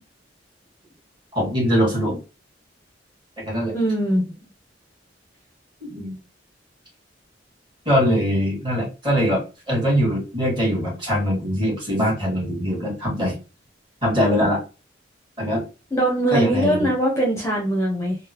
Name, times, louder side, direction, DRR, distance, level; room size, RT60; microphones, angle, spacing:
voice 1, 1.3-2.2 3.4-3.7 5.8-6.2 7.9-9.4 9.7-13.4 14.0-14.6 15.4-15.6 16.3-16.9, equal, 25° right, -3 dB, 1.6 m, -22 dB
voice 2, 3.7-4.2 15.9-18.2, right 1 dB, 15° left, -1 dB, 0.7 m, -21 dB
3.7 x 2.1 x 2.8 m, 0.32 s
head